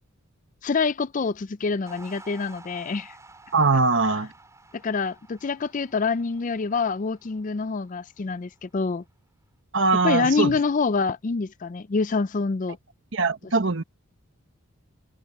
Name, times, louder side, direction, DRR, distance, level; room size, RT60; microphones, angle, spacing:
voice 1, 0.6-3.1 4.8-9.0 10.0-12.8, left 4 dB, 35° left, 0.4 m, -26 dB
sound 1, 1.9-8.3, right 3 dB, 15° right, 5.4 m, -51 dB
voice 2, 3.5-4.3 9.7-10.6 13.1-13.8, right 3 dB, 60° right, 1.2 m, -21 dB
head